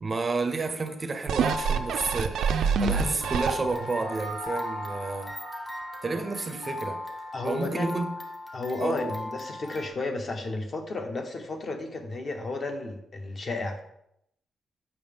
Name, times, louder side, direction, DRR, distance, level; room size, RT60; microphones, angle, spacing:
voice 1, 0.0-5.4 6.0-7.0 7.4-8.2 8.8-9.1, right 3 dB, 25° right, 7 dB, 0.6 m, -31 dB
sound 1, 0.7-9.9, left 2 dB, 15° left, 0.6 m, -39 dB
sound 2, 1.3-4.0 4.5-4.6, right 6 dB, 85° right, 0.5 m, -26 dB
sound 3, 3.7-8.3, equal, 85° left, 2.5 m, -41 dB
voice 2, 7.3-7.9 8.5-13.8, left 2 dB, 40° left, 5 dB, 0.9 m, -33 dB
7.1 x 5.7 x 3.4 m, 0.77 s
wide cardioid pair, 155°, 0 cm